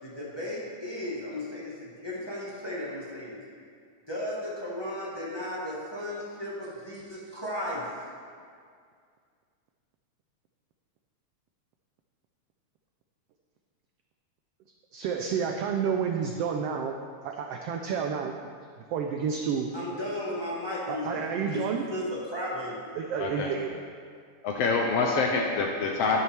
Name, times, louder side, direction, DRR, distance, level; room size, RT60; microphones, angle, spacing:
voice 1, 0.0-3.4 4.1-7.9 19.7-21.6 21.9-22.8, left 1 dB, 15° left, -7 dB, 0.8 m, -35 dB
voice 2, 14.9-16.9 17.2-18.3 18.9-19.7 20.9-21.9 23.0-23.7, right 7 dB, 85° right, 3 dB, 1.3 m, -30 dB
voice 3, 23.2-23.5 24.4-26.2, left 4 dB, 75° left, 0 dB, 1.5 m, -26 dB
11.0 x 9.7 x 3.4 m, 2.1 s
omnidirectional pair, 3.3 m